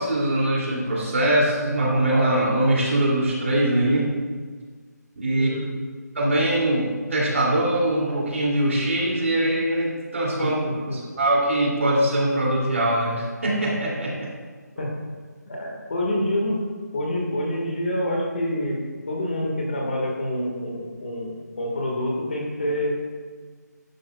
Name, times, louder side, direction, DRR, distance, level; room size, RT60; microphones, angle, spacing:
voice 1, 0.0-4.1 5.2-5.5 6.1-10.5 10.9-14.3, right 1 dB, 45° right, -4 dB, 2.6 m, -22 dB
voice 2, 5.3-5.7 10.4-11.0 14.8-14.9 15.5-16.6 16.9-18.8 19.1-23.0, left 1 dB, 35° left, -1 dB, 1.6 m, -27 dB
11.0 x 10.0 x 2.3 m, 1.5 s
hypercardioid pair, 180°, 10 cm